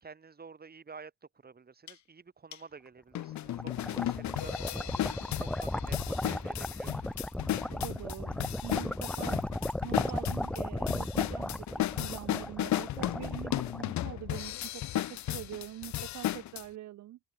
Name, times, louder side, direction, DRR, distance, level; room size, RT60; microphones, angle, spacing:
voice 1, 0.0-1.1 1.4-7.1, right 5 dB, 30° right, 2.7 m, -50 dB
sound 1, 1.9-2.0 2.5-2.6 3.2-16.6, left 13 dB, 65° left, 0.9 m, -35 dB
sound 2, 3.2-14.4, left 1 dB, 5° left, 0.3 m, -36 dB
voice 2, 7.7-9.4 9.8-17.2, right 14 dB, 65° right, 0.7 m, -44 dB
open air
cardioid pair, 90°, 30 cm